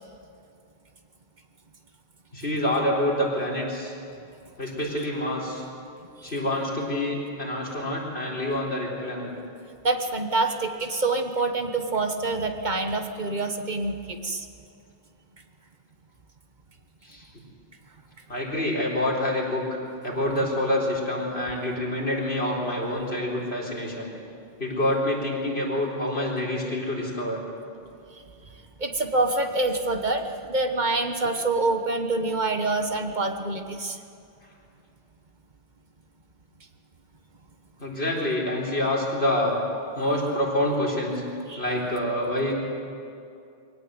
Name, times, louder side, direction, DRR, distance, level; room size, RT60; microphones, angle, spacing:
voice 1, 2.3-3.9 4.6-5.7 6.2-9.3 17.0-17.2 18.3-24.1 24.6-27.4 37.8-39.6 39.9-41.2 41.6-42.5, left 1 dB, 85° left, -3 dB, 4.4 m, -27 dB
voice 2, 9.8-14.5 28.8-34.0 41.5-41.6, right 2 dB, 50° right, 5 dB, 1.4 m, -26 dB
23.0 x 18.0 x 8.0 m, 2.5 s
omnidirectional pair, 1.0 m